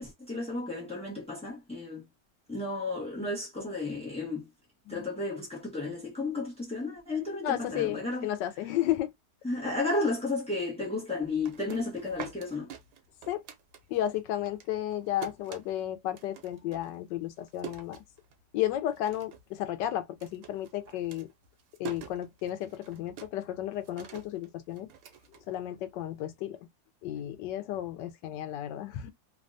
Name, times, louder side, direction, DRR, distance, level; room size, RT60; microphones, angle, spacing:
voice 1, 0.0-2.1 2.5-4.5 4.9-8.3 9.4-12.7, left 3 dB, 5° left, 0.5 m, -33 dB
voice 2, 7.4-9.1 13.3-13.4 13.9-18.0 18.5-21.3 21.8-24.9 25.5-26.6 27.0-29.1, left 12 dB, 80° left, 1.2 m, -33 dB
sound 1, 11.2-14.2 14.5-18.6 18.9-19.5 19.8-26.0, right 9 dB, 85° right, 1.4 m, -46 dB
3.3 x 2.2 x 2.5 m
omnidirectional pair, 1.9 m